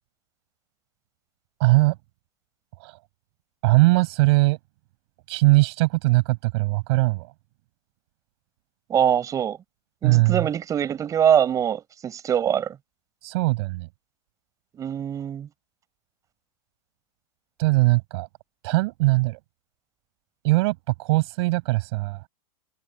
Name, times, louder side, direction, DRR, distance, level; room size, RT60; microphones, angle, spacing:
voice 1, 1.6-1.9 2.8-3.0 3.6-4.6 5.3-7.3 10.0-10.5 13.2-13.9 17.6-18.3 18.6-19.4 20.4-22.2, right 22 dB, 50° right, 6.2 m, -20 dB
voice 2, 8.9-9.6 10.0-12.8 14.8-15.5, right 9 dB, 20° right, 8.0 m, -23 dB
supercardioid pair, 165°, 18 cm